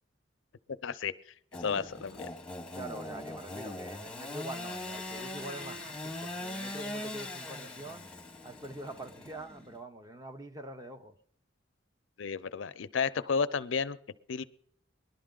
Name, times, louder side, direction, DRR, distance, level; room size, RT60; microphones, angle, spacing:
voice 1, 0.8-1.1 1.6-2.3 12.2-14.0 14.3-14.4, left 5 dB, 80° left, 0.5 m, -32 dB
Engine / Sawing, 1.5-9.8, left 2 dB, 5° left, 1.0 m, -41 dB
voice 2, 2.7-8.1 8.4-11.2, right 1 dB, 20° right, 0.7 m, -44 dB
20.5 x 11.5 x 3.8 m
head